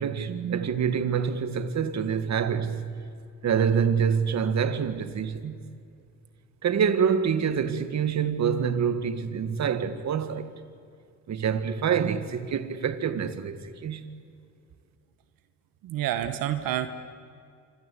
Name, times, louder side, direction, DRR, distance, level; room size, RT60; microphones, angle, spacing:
voice 1, 0.0-2.9 3.4-5.6 6.6-10.5 11.3-14.0, right 7 dB, 55° right, 1.8 m, -26 dB
voice 2, 15.8-16.9, right 12 dB, 90° right, 1.3 m, -28 dB
26.5 x 26.0 x 8.5 m
cardioid pair, 100°, 33 cm